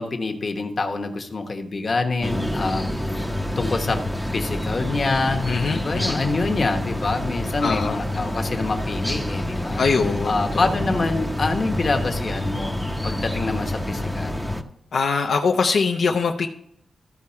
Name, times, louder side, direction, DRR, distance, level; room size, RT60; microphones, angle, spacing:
voice 1, 0.0-3.2 3.6-4.0 4.3-9.8 10.2-12.8 13.0-14.4, left 3 dB, 40° left, 4 dB, 1.1 m, -26 dB
sound 1, 2.2-14.6, left 1 dB, ahead, 0.6 m, -27 dB
voice 2, 5.5-6.2 7.6-8.0 9.8-10.3 14.9-16.5, left 5 dB, 75° left, 2 dB, 0.6 m, -22 dB
13.5 x 4.7 x 4.3 m, 0.74 s
wide cardioid pair, 125°, 0 cm